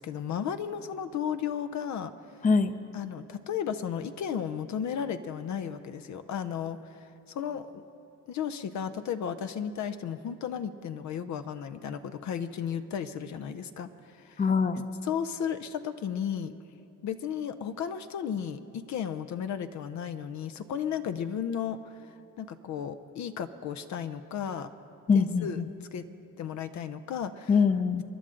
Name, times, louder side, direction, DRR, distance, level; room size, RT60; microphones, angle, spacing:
voice 1, 0.0-2.1 2.9-7.8 8.3-13.9 14.2-14.4 15.0-16.5 17.0-21.8 22.4-24.7 25.1-25.6 25.9-26.1 26.4-27.5, left 8 dB, 65° left, 10 dB, 0.6 m, -34 dB
voice 2, 2.4-2.7 14.4-14.8 25.1-25.7 27.5-28.0, left 5 dB, 25° left, 10 dB, 0.7 m, -23 dB
27.5 x 11.0 x 3.8 m, 2.7 s
cardioid pair, 90°, 30 cm